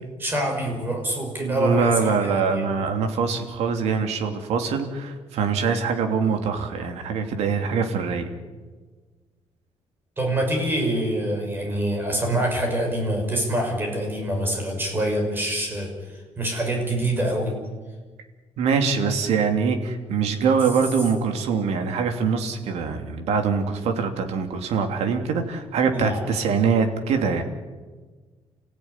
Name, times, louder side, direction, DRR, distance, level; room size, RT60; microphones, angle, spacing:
voice 1, 0.2-2.6 10.2-15.9 16.4-17.5 25.9-26.2, right 1 dB, 20° right, 2 dB, 6.2 m, -25 dB
voice 2, 1.4-8.3 18.6-27.4, right 5 dB, 85° right, 5 dB, 3.0 m, -23 dB
29.0 x 16.0 x 9.9 m, 1.4 s
cardioid pair, 180°, 11 cm